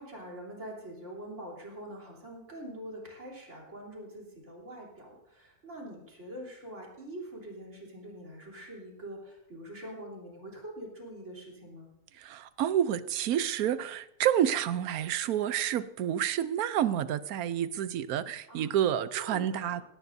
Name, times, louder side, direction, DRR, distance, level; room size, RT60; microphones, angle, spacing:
voice 1, 0.0-11.9 18.5-18.8 19.2-19.8, right 1 dB, 50° right, -2 dB, 3.9 m, -44 dB
voice 2, 12.1-19.8, right 10 dB, 75° right, 14 dB, 1.1 m, -29 dB
17.5 x 17.5 x 2.7 m, 0.88 s
omnidirectional pair, 1.6 m